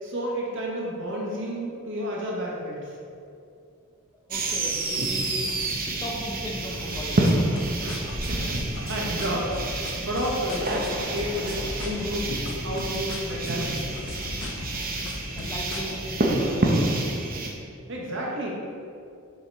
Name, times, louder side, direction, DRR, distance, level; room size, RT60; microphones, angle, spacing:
voice 1, 0.0-2.9 7.8-12.3 12.6-13.9 17.9-18.5, equal, 65° right, -3 dB, 1.3 m, -31 dB
voice 2, 4.3-5.7 6.0-7.6 15.3-16.9, equal, 20° left, -1 dB, 0.7 m, -37 dB
sound 1, 4.3-17.5, right 2 dB, 45° right, 0.8 m, -28 dB
sound 2, 5.0-17.1, equal, 15° right, 0.8 m, -41 dB
sound 3, 6.7-16.1, left 2 dB, 65° left, 0.6 m, -38 dB
6.7 x 4.7 x 3.5 m, 2.5 s
head